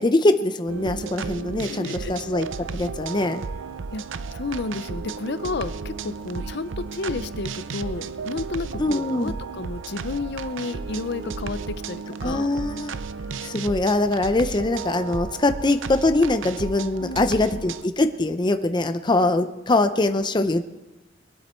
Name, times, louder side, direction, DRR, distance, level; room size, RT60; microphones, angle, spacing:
voice 1, 0.0-2.5 2.7-3.4 8.8-9.3 12.2-12.9 13.4-20.6, left 2 dB, 25° left, 8 dB, 0.6 m, -22 dB
sound 1, 0.7-17.9, right 5 dB, 80° right, 0.6 m, -34 dB
voice 2, 1.6-2.1 3.9-12.5 17.0-17.5, left 3 dB, 60° left, 13 dB, 0.7 m, -32 dB
21.5 x 12.0 x 4.4 m, 1.0 s
head